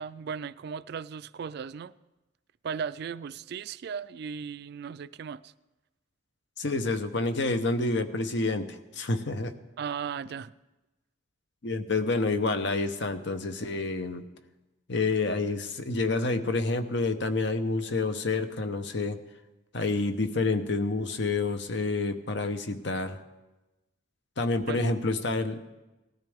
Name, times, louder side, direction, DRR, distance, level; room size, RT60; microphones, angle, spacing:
voice 1, 0.0-1.9 2.6-5.5 9.8-10.5 24.7-24.8, right 6 dB, 55° right, 16 dB, 0.3 m, -36 dB
voice 2, 6.6-9.5 11.6-14.2 14.9-19.2 19.7-23.2 24.4-25.6, left 3 dB, 60° left, 9 dB, 0.9 m, -28 dB
18.5 x 13.5 x 3.6 m, 1.1 s
head